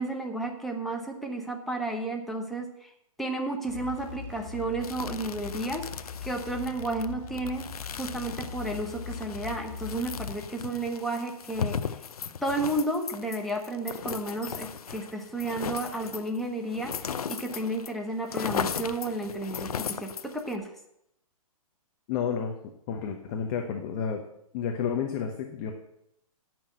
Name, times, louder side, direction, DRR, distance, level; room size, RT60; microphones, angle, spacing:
voice 1, 0.0-2.9 3.2-5.9 6.2-7.7 7.9-12.0 12.4-20.7, right 2 dB, ahead, 1 dB, 1.1 m, -32 dB
sound 1, 3.6-10.4, left 6 dB, 55° left, 1.9 m, -40 dB
sound 2, 4.8-17.9 18.2-20.6, left 7 dB, 90° left, 0.7 m, -37 dB
voice 2, 22.1-22.5 22.9-24.2 24.5-25.7, left 7 dB, 35° left, 4 dB, 1.1 m, -30 dB
8.7 x 6.2 x 7.8 m, 0.78 s
hypercardioid pair, 145°, 19 cm